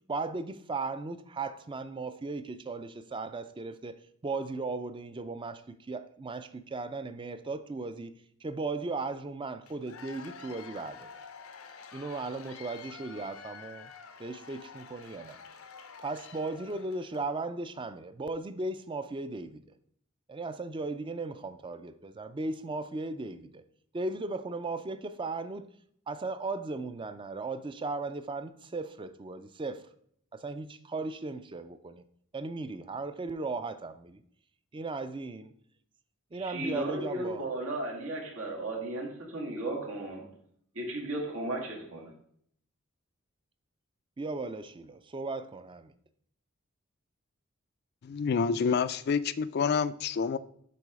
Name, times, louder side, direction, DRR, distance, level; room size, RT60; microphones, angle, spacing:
voice 1, 0.1-4.0 4.2-8.1 8.4-11.1 11.9-13.9 14.2-15.4 16.0-19.6 20.3-23.6 23.9-25.6 26.1-29.8 30.3-32.0 32.3-34.2 34.7-35.4 36.3-37.4 44.2-45.9, right 3 dB, 25° right, 0.4 m, -36 dB
Cheering / Applause / Crowd, 9.7-17.3, left 6 dB, 85° left, 0.7 m, -49 dB
voice 2, 36.3-40.4 40.7-42.1, right 1 dB, 85° right, 1.8 m, -35 dB
voice 3, 48.0-50.4, left 6 dB, 50° left, 0.3 m, -28 dB
6.9 x 4.1 x 4.8 m
head